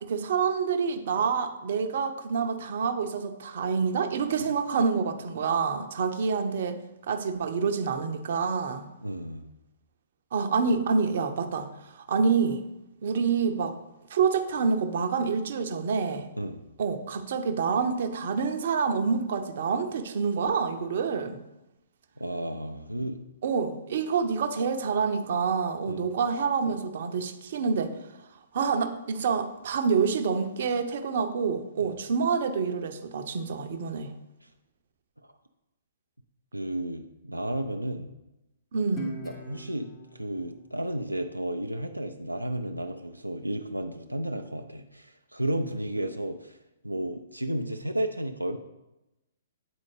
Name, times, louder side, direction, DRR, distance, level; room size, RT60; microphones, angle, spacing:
voice 1, 0.0-6.8 7.1-8.9 10.3-12.6 13.0-13.8 14.1-16.3 16.8-21.4 23.4-27.9 28.5-34.1 38.7-39.2, right 5 dB, 50° right, 7 dB, 0.6 m, -27 dB
voice 2, 9.0-9.4 16.4-16.6 22.2-23.2 25.9-26.1 31.8-32.0 34.4-34.5 36.5-38.1 39.2-48.6, right 1 dB, 90° right, 5 dB, 0.4 m, -33 dB
Guitar, 39.0-42.2, right 1 dB, 20° left, 0.7 m, -43 dB
8.7 x 4.1 x 3.2 m, 0.95 s
figure-of-eight pair, 120°, 0 cm